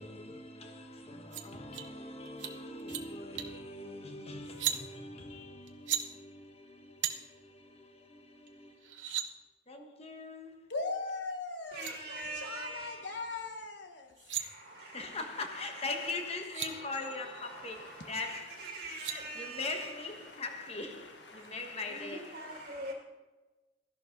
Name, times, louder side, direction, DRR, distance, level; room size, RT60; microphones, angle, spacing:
voice 1, 0.0-9.1 9.7-10.7 14.3-22.5, left 3 dB, 35° left, 1.3 m, -42 dB
sound 1, 1.3-1.4 1.7-1.9 2.3-2.5 2.8-3.0 3.4-3.6 4.5-4.8 5.7-6.0 7.0-7.1 8.5-8.6 8.8-9.3 11.3-11.4 11.7-11.9 14.0-14.4 16.1-16.2 16.4-16.7 18.6-19.2, right 11 dB, 85° right, 1.0 m, -35 dB
voice 2, 10.7-15.2 16.7-16.8 17.4-18.6 19.4-19.6 20.2-22.8, left 3 dB, 65° left, 1.5 m, -43 dB
voice 3, 11.7-13.1 14.3-15.2 15.5-16.1 16.6-20.3 21.3-22.9, right 2 dB, 55° right, 2.0 m, -45 dB
13.5 x 11.0 x 3.9 m
head